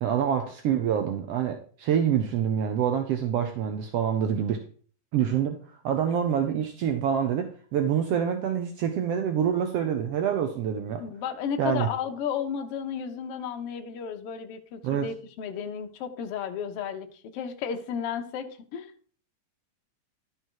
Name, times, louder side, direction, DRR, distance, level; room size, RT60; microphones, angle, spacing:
voice 1, 0.0-4.6 5.1-5.6 5.8-11.0 11.6-11.9 14.8-15.1, right 8 dB, 75° right, 6 dB, 1.4 m, -26 dB
voice 2, 11.0-17.1 17.3-18.9, left 7 dB, 70° left, 5 dB, 1.4 m, -33 dB
12.0 x 5.3 x 4.6 m, 0.44 s
omnidirectional pair, 3.9 m